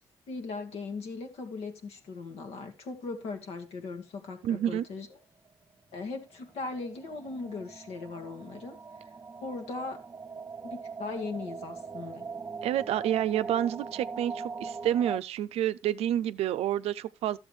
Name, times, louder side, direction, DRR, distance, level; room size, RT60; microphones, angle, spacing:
voice 1, 0.3-5.1 5.9-8.8 9.4-10.0 10.6-12.3, left 3 dB, 80° left, 1.5 m, -38 dB
voice 2, 4.4-4.8 12.6-17.4, right 11 dB, 80° right, 0.4 m, -29 dB
sound 1, 5.5-5.6 5.8-5.9 6.1-15.2, right 5 dB, 25° right, 0.5 m, -41 dB
12.0 x 7.1 x 3.2 m
cardioid pair, 70°, 10 cm